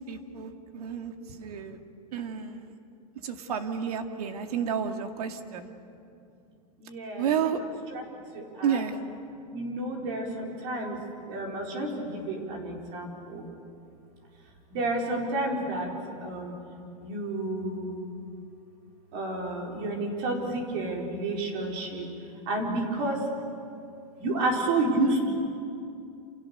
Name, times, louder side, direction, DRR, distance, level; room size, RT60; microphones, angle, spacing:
voice 1, 0.1-1.8 2.1-2.7 3.2-5.7 7.2-7.6 8.6-9.0, right 7 dB, 85° right, 5 dB, 2.2 m, -31 dB
voice 2, 6.8-7.3 7.6-8.0 8.3-8.8 9.5-11.0 11.3-13.5 14.7-15.9 16.2-16.5 17.0-18.0 19.1-22.1 22.5-23.2 24.2-25.3, right 2 dB, 40° right, 0 dB, 4.6 m, -30 dB
28.5 x 28.0 x 6.9 m, 2.6 s
supercardioid pair, 180°, 19 cm